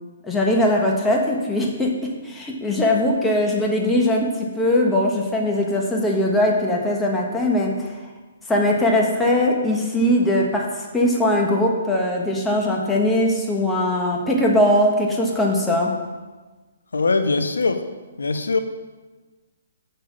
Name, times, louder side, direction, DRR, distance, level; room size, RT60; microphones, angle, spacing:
voice 1, 0.2-7.9 8.5-10.7 10.9-15.9, left 1 dB, 10° left, -2 dB, 1.3 m, -20 dB
voice 2, 16.9-17.8 18.2-18.6, left 3 dB, 85° left, 8 dB, 0.9 m, -21 dB
6.8 x 5.8 x 7.1 m, 1.3 s
hypercardioid pair, 140°, 0 cm